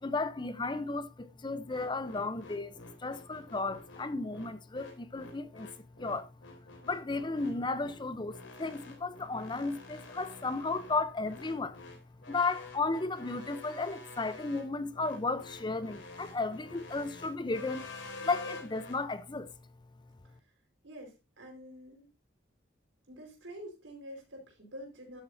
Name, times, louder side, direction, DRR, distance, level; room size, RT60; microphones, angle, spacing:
voice 1, 0.0-5.7 6.0-6.3 6.8-11.8 12.3-17.9 18.2-19.5, left 3 dB, 25° left, 0.7 m, -34 dB
sound 1, 1.7-19.0, left 3 dB, 85° left, 3.1 m, -48 dB
voice 2, 20.8-22.1 23.1-25.2, equal, 85° right, 4.6 m, -47 dB
12.0 x 8.5 x 2.7 m
head